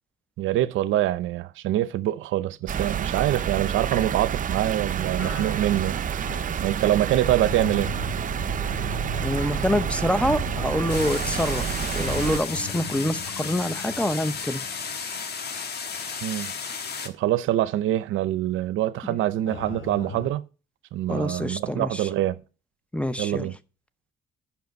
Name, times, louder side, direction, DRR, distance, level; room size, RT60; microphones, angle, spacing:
voice 1, 0.4-6.0 6.6-7.9 16.2-16.5 17.0-20.4 20.9-22.4 23.2-23.5, right 13 dB, 85° right, 0.6 m, -25 dB
sound 1, 2.7-12.4, right 8 dB, 40° right, 0.6 m, -29 dB
sound 2, 5.2-15.6 15.9-16.1 16.7-16.8 19.5-20.3, left 2 dB, 75° left, 3.7 m, -38 dB
voice 2, 9.2-11.6 11.9-14.6 19.1-19.2 21.1-22.1 22.9-23.5, equal, 5° left, 0.7 m, -26 dB
sound 3, 10.9-17.1, left 5 dB, 55° left, 1.4 m, -33 dB
10.5 x 5.7 x 5.2 m
cardioid pair, 90°, 20 cm